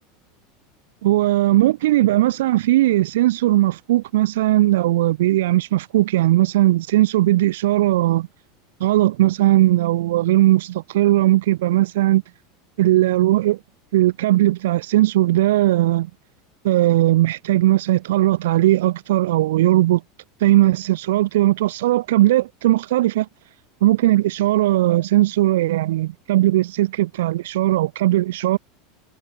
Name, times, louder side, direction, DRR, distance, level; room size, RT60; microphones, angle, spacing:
voice 1, 1.0-8.3 8.8-12.2 12.8-13.6 13.9-16.1 16.6-20.0 20.4-23.3 23.8-28.6, right 15 dB, 70° right, 1.0 m, -18 dB
hypercardioid pair, 85°, 0 cm